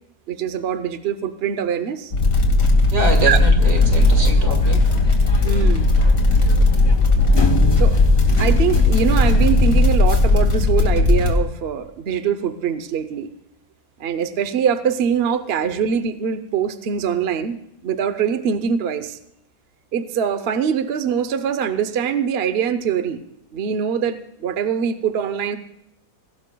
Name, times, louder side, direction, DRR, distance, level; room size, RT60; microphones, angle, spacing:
voice 1, 0.3-2.1 3.2-3.4 5.4-5.9 7.8-7.9 8.4-13.3 14.0-19.2 19.9-23.2 23.5-25.6, right 7 dB, 50° right, 10 dB, 0.9 m, -23 dB
sound 1, 2.1-11.3, left 2 dB, 55° left, 2.5 m, -16 dB
voice 2, 2.9-4.8 15.7-15.8, right 2 dB, 80° right, 2 dB, 2.8 m, -24 dB
sound 2, 3.6-9.9, left 1 dB, 25° left, 0.6 m, -28 dB
22.5 x 17.0 x 2.3 m, 0.79 s
omnidirectional pair, 1.7 m